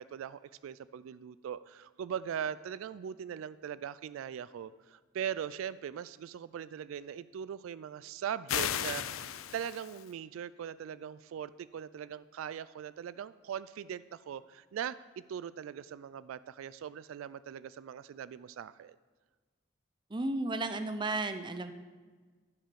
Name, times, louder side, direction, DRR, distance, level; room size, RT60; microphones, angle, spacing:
voice 1, 0.0-19.0, right 8 dB, 80° right, 18 dB, 0.3 m, -40 dB
sound 1, 8.5-10.1, left 10 dB, 90° left, 0.5 m, -35 dB
voice 2, 20.1-21.7, right 2 dB, 20° right, 9 dB, 0.6 m, -33 dB
11.5 x 5.6 x 6.9 m, 1.4 s
head